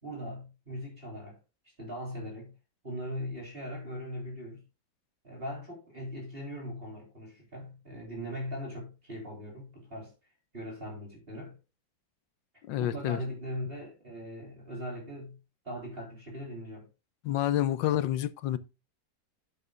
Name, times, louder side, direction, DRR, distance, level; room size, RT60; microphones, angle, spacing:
voice 1, 0.0-1.4 1.8-2.5 2.8-4.6 5.2-10.1 10.5-11.6 12.8-15.4 15.6-16.9, equal, 30° right, 3.8 m, -40 dB
voice 2, 12.6-13.2 17.2-18.6, left 12 dB, 85° left, 1.4 m, -28 dB
10.5 x 8.9 x 2.4 m
omnidirectional pair, 2.0 m